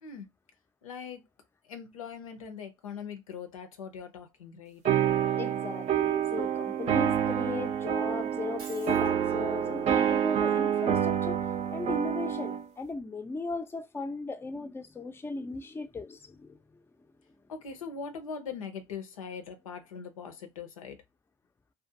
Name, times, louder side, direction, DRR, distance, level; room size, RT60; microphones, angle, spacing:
voice 1, 0.8-1.2 1.7-4.8 17.5-21.0, left 6 dB, 90° left, 0.5 m, -41 dB
sound 1, 4.8-12.6, right 9 dB, 40° right, 0.5 m, -28 dB
voice 2, 5.3-11.4 11.7-16.8, left 3 dB, 15° left, 0.4 m, -37 dB
Shatter, 8.6-9.1, right 3 dB, 85° right, 1.1 m, -48 dB
2.4 x 2.3 x 2.6 m
hypercardioid pair, 60°, 17 cm